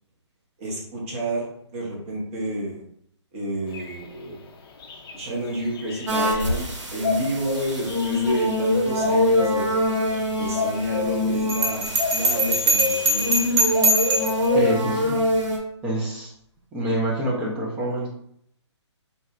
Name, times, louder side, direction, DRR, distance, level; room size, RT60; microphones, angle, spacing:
voice 1, 0.6-2.8 3.3-4.4 5.1-9.8 10.3-13.5, equal, 25° right, -4 dB, 0.8 m, -30 dB
sound 1, 3.7-15.1, left 5 dB, 50° left, 0.5 m, -32 dB
sound 2, 6.1-15.6, left 1 dB, 85° right, 0.8 m, -24 dB
Bell, 11.5-14.5, right 1 dB, 60° right, 0.9 m, -22 dB
voice 2, 14.5-15.2 15.8-16.3 16.7-18.1, right 1 dB, 5° right, -4 dB, 0.3 m, -26 dB
4.0 x 2.0 x 2.4 m, 0.71 s
hypercardioid pair, 150°, 15 cm